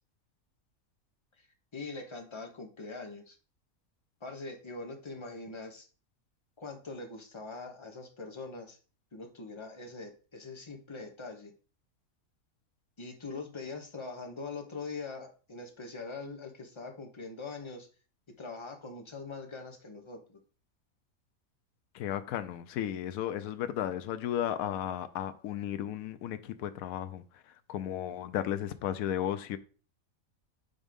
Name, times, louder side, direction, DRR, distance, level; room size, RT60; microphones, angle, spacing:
voice 1, 1.7-3.4 4.2-5.9 6.6-8.8 9.1-11.5 13.0-17.9 18.4-20.4, left 3 dB, 25° left, 1.0 m, -42 dB
voice 2, 21.9-27.2 27.7-29.6, left 11 dB, 80° left, 1.0 m, -34 dB
5.4 x 3.6 x 5.2 m
omnidirectional pair, 1.5 m